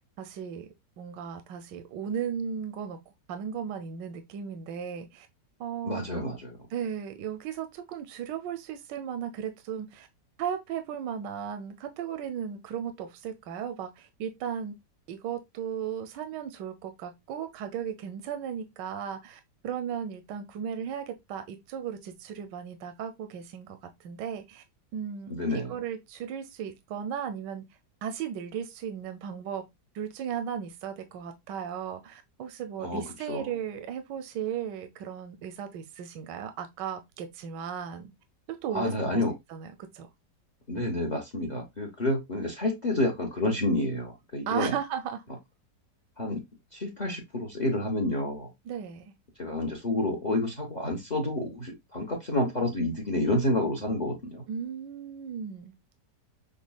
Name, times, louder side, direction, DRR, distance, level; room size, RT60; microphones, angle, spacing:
voice 1, 0.2-0.7 1.0-3.0 3.3-5.3 5.6-6.3 6.7-10.1 10.4-14.7 15.1-24.6 24.9-27.7 28.0-29.6 29.9-38.1 38.5-39.2 39.5-40.1 44.5-45.2 48.7-49.1 54.5-55.7, right 8 dB, 85° right, 1.3 m, -36 dB
voice 2, 5.8-6.6 25.3-25.7 32.8-33.0 33.3-33.5 38.7-39.3 40.7-44.7 46.2-46.4 46.7-48.5 49.4-54.4, left 1 dB, 35° left, 0.7 m, -29 dB
6.2 x 2.1 x 2.2 m
omnidirectional pair, 1.9 m